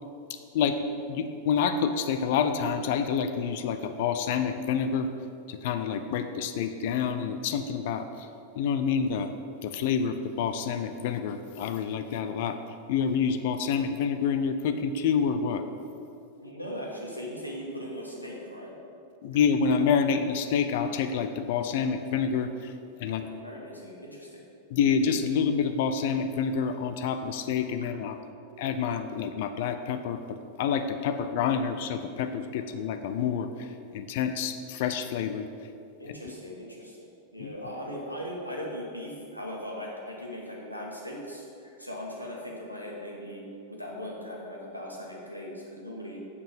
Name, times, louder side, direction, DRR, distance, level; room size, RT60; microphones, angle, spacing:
voice 1, 0.5-5.1 5.5-8.3 8.5-9.3 9.6-12.6 12.9-15.6 19.2-22.7 23.0-23.3 24.7-28.2 28.6-35.5 37.4-37.5, left 6 dB, 50° left, 9 dB, 0.5 m, -28 dB
voice 2, 16.4-18.7 23.0-24.4 32.6-32.7 36.0-43.4 43.7-46.2, equal, 90° left, -2 dB, 1.6 m, -39 dB
7.2 x 5.5 x 7.0 m, 2.5 s
figure-of-eight pair, 90°, 0 cm